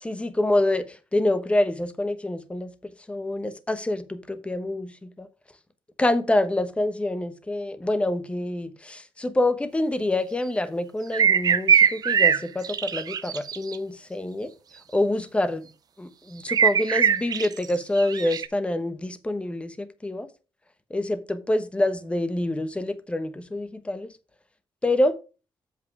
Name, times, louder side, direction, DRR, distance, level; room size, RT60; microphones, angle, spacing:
voice 1, 0.0-5.3 6.0-14.5 14.9-15.7 16.0-20.3 20.9-24.1 24.8-25.1, left 1 dB, 15° left, 0.9 m, -26 dB
sound 1, 11.1-13.8 16.5-17.7 18.0-18.5, right 7 dB, 50° right, 0.5 m, -21 dB
7.6 x 5.5 x 4.7 m
cardioid pair, 125°, 8 cm